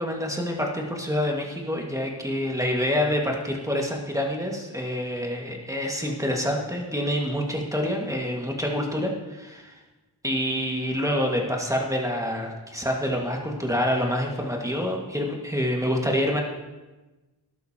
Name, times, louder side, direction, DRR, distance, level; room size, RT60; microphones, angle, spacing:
voice 1, 0.0-9.8 10.2-16.4, equal, 5° right, 0 dB, 1.8 m, -27 dB
13.5 x 11.5 x 2.9 m, 1.1 s
wide cardioid pair, 65°, 42 cm